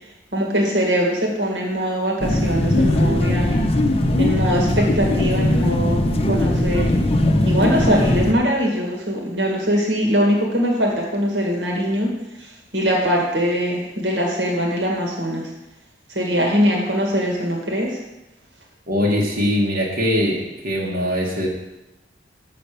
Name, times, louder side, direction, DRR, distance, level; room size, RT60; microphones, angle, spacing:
voice 1, 0.3-3.7 4.2-6.0 6.3-6.9 7.5-15.5 16.1-18.0, equal, 75° right, -1 dB, 1.9 m, -22 dB
sound 1, 2.2-8.3, left 1 dB, 35° left, 0.7 m, -19 dB
voice 2, 18.9-21.5, left 1 dB, 55° right, -3 dB, 1.9 m, -21 dB
6.9 x 6.8 x 6.7 m, 0.96 s
head